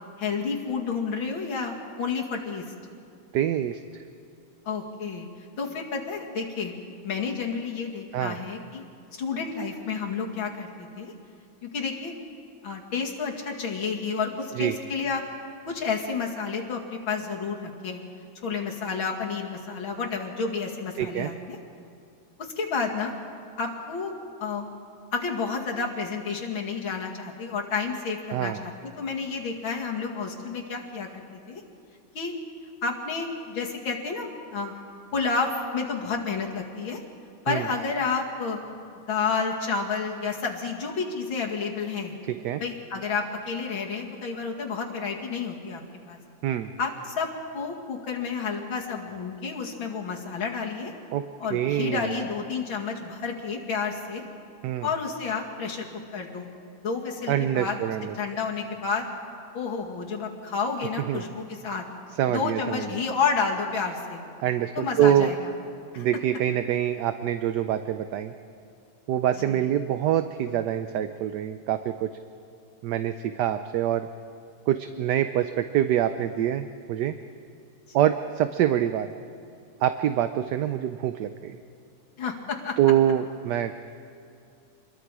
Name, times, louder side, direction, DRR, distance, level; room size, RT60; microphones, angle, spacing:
voice 1, 0.2-2.6 4.6-5.3 5.6-6.7 7.0-8.8 9.1-11.1 11.6-12.2 12.6-15.2 15.7-18.0 18.4-21.6 22.4-23.1 23.6-24.1 24.4-24.7 25.1-31.6 32.1-32.3 32.8-34.7 35.1-37.0 37.4-38.6 39.1-42.1 42.6-45.8 46.1-46.2 46.8-47.3 47.5-50.9 51.4-54.2 54.8-55.9 56.1-56.5 56.8-57.8 58.1-59.1 59.5-61.9 62.3-64.2 64.8-65.5 65.9-66.1 69.4-69.6 82.2-82.8, left 5 dB, 75° left, 0 dB, 3.0 m, -30 dB
voice 2, 3.3-3.8 8.1-8.4 14.6-14.8 21.0-21.3 28.3-28.6 37.5-37.7 42.3-42.6 46.4-46.7 51.1-51.2 51.5-52.2 54.6-54.9 57.3-58.1 61.1-61.2 62.2-63.0 64.4-65.3 66.0-68.3 69.1-72.2 72.8-74.1 74.7-77.2 77.9-79.1 79.8-81.6 82.8-83.8, right 11 dB, 70° right, 9 dB, 1.1 m, -25 dB
27.5 x 22.0 x 4.9 m, 2.5 s
omnidirectional pair, 2.2 m